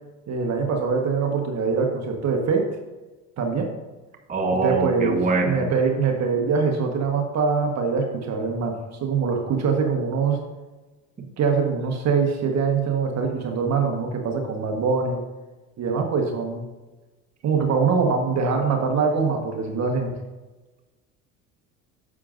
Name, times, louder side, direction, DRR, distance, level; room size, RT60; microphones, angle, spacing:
voice 1, 0.3-2.7 3.4-3.7 4.6-10.4 11.4-15.2 15.8-16.6 17.4-20.1, right 5 dB, 45° right, 3 dB, 1.4 m, -23 dB
voice 2, 4.3-5.6, right 3 dB, 20° right, 1 dB, 1.3 m, -23 dB
9.7 x 7.4 x 2.6 m, 1.2 s
hypercardioid pair, 85°, 39 cm